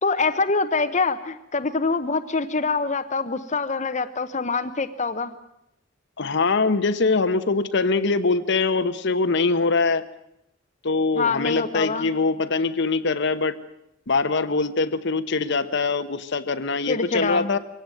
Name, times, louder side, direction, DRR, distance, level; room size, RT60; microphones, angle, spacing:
voice 1, 0.0-5.3 11.2-12.1 16.9-17.5, left 4 dB, 35° left, 8 dB, 0.9 m, -25 dB
voice 2, 6.2-10.0 10.8-13.5 14.1-17.6, left 3 dB, 60° left, 10 dB, 1.0 m, -23 dB
23.0 x 17.0 x 9.0 m, 0.81 s
head